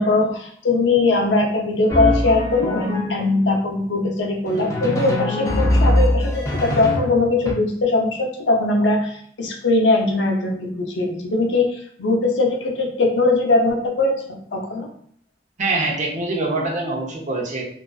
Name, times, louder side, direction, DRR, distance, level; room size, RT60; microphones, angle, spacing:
voice 1, 0.0-14.9, left 2 dB, 75° left, 1 dB, 0.5 m, -20 dB
Drum, 1.9-3.4 4.5-7.5, left 1 dB, 15° left, 0.4 m, -22 dB
voice 2, 15.6-17.6, right 2 dB, 40° right, -2 dB, 0.6 m, -24 dB
2.4 x 2.3 x 2.2 m, 0.62 s
head